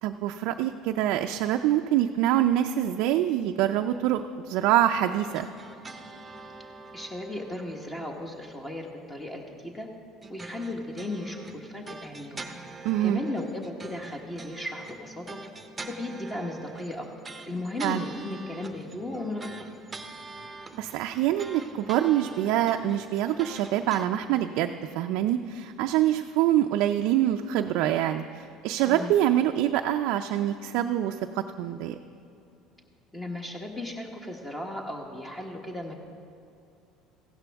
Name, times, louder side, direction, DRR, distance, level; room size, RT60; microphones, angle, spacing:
voice 1, 0.0-5.5 12.8-13.2 17.8-18.1 20.7-32.0, right 12 dB, 75° right, 5 dB, 0.4 m, -25 dB
sound 1, 5.3-9.0 10.2-24.1, right 3 dB, 15° right, 0.8 m, -44 dB
voice 2, 6.9-9.9 10.3-12.4 13.0-15.4 15.8-17.1 17.5-20.0 28.8-29.1 33.1-35.9, left 1 dB, 15° left, 1 dB, 1.2 m, -36 dB
15.0 x 11.5 x 3.5 m, 2.6 s
supercardioid pair, 100°, 0 cm